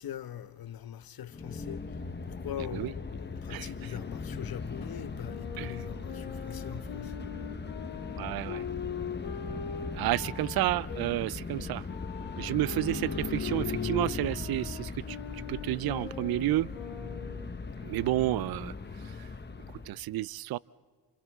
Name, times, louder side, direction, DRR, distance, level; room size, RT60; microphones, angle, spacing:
voice 1, 0.0-1.8 2.2-7.2 8.3-8.4 9.3-9.4 10.0-10.1 12.5-12.8, left 10 dB, 55° left, 1.1 m, -42 dB
sound 1, 1.3-20.0, left 4 dB, 25° left, 1.2 m, -39 dB
voice 2, 3.5-3.9 5.6-5.8 8.2-8.6 9.9-11.9 12.4-15.2 15.5-16.7 17.8-18.7 19.2-19.3 19.9-20.6, right 16 dB, 60° right, 0.5 m, -31 dB
Wind instrument woodwind instrument, 5.2-11.1 11.9-17.6, left 7 dB, 75° left, 2.7 m, -41 dB
29.0 x 28.0 x 3.6 m
cardioid pair, 75°, 42 cm